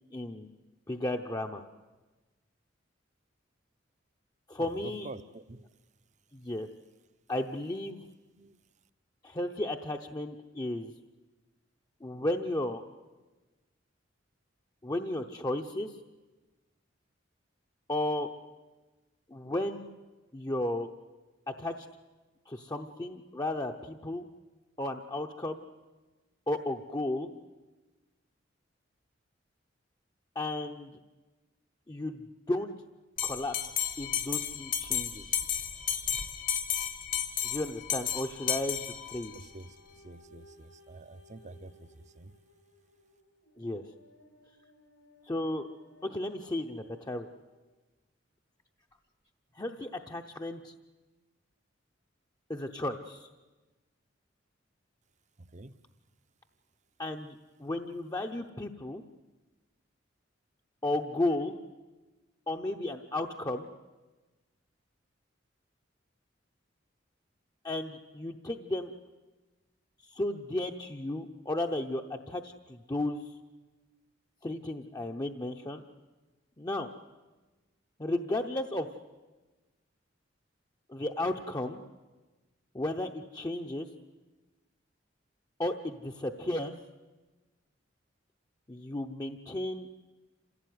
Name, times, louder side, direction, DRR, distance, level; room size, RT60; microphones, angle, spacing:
voice 1, 0.1-0.5 0.9-1.6 4.5-5.1 6.3-6.7 7.3-8.0 9.2-10.9 12.0-12.8 14.8-15.9 17.9-18.3 19.3-19.9 20.3-20.9 21.5-21.9 22.5-24.2 24.8-25.6 26.5-27.3 30.3-30.9 31.9-32.2 32.5-32.7 33.2-33.6 34.0-35.3 37.4-39.3 43.6-43.8 45.2-45.7 46.0-47.3 49.5-50.7 52.5-53.3 57.0-59.0 60.8-61.6 62.5-63.7 67.6-68.9 70.0-73.3 74.4-75.8 76.6-76.9 78.0-78.9 80.9-81.8 82.7-83.9 85.6-86.8 88.7-89.9, left 1 dB, 20° left, 3 dB, 0.8 m, -34 dB
voice 2, 4.6-5.7 8.4-8.6 39.3-42.3 55.4-55.7, right 2 dB, 40° right, 13 dB, 0.8 m, -47 dB
Bell, 33.2-39.4, left 9 dB, 50° left, 1.3 m, -33 dB
sound 1, 38.5-47.6 48.3-48.4, left 1 dB, 90° left, 7.3 m, -60 dB
27.0 x 16.0 x 9.5 m, 1.2 s
head